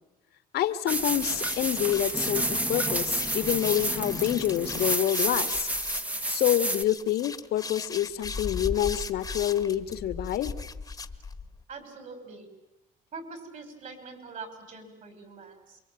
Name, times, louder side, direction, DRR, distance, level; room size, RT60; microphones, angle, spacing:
voice 1, 0.5-5.7 6.3-10.5, left 12 dB, 75° left, 11 dB, 1.6 m, -27 dB
sound 1, 0.9-6.8, right 1 dB, 10° right, 1.1 m, -29 dB
sound 2, 1.2-11.6, left 4 dB, 20° left, 1.4 m, -38 dB
voice 2, 11.7-12.5 13.1-15.8, right 4 dB, 50° right, 8 dB, 6.2 m, -43 dB
27.0 x 24.0 x 9.1 m, 0.96 s
cardioid pair, 110°, 17 cm